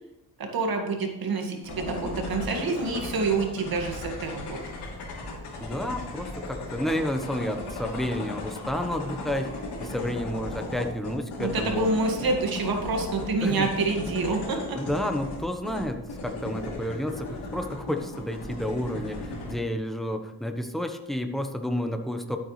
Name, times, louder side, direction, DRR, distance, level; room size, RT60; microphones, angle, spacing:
voice 1, 0.4-4.6 11.4-14.8, right 3 dB, 60° right, 3 dB, 2.1 m, -27 dB
sound 1, 1.6-19.5, left 2 dB, 75° left, 3.2 m, -36 dB
voice 2, 5.6-11.9 13.4-13.7 14.7-19.2 19.4-22.4, left 1 dB, ahead, 5 dB, 1.1 m, -30 dB
12.5 x 8.4 x 3.3 m, 0.97 s
cardioid pair, 100°, 40 cm